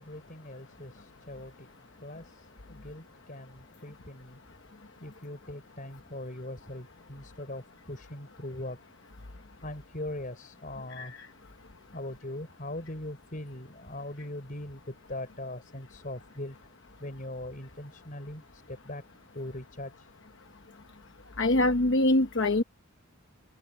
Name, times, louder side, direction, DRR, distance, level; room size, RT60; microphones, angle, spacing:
voice 1, 0.0-4.5 5.0-8.8 9.6-11.2 11.9-16.7 17.0-19.0 19.3-20.1, left 1 dB, 35° left, 4.9 m, -41 dB
voice 2, 21.4-22.6, left 2 dB, 55° left, 1.0 m, -24 dB
head